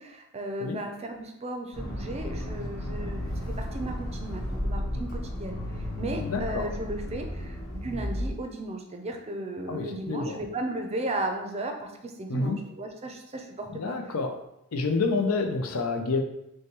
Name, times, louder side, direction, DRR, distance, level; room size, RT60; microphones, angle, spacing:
voice 1, 0.0-5.6 6.0-14.0, right 1 dB, 30° right, 4 dB, 0.5 m, -35 dB
Accelerating revving vroom, 1.7-8.3, left 1 dB, 50° left, 1.3 m, -33 dB
voice 2, 6.2-6.7 9.7-10.4 12.3-12.6 13.7-14.4 14.7-16.2, left 3 dB, 80° left, 5 dB, 0.6 m, -28 dB
6.2 x 2.2 x 3.0 m, 0.82 s
head